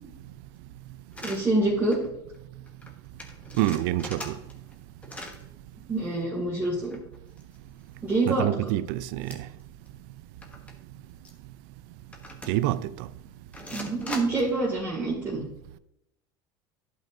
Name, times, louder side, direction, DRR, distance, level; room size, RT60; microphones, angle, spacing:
sound 1, 1.1-1.4 1.9-2.1 2.3-2.4 2.7-2.9 3.2-4.7 5.0-5.4 6.8-7.8 8.3-8.4 9.2-9.6 9.9-10.0 10.4-10.7 11.2-11.3 12.1-12.8 13.5-14.6, left 1 dB, 10° left, 1.3 m, -40 dB
voice 1, 1.2-2.0 5.9-7.0 8.0-8.5 13.7-15.4, right 2 dB, 15° right, 2.3 m, -26 dB
voice 2, 3.6-4.3 8.3-9.3 12.5-13.1, right 14 dB, 75° right, 0.4 m, -26 dB
11.5 x 5.4 x 2.6 m
supercardioid pair, 120°, 11 cm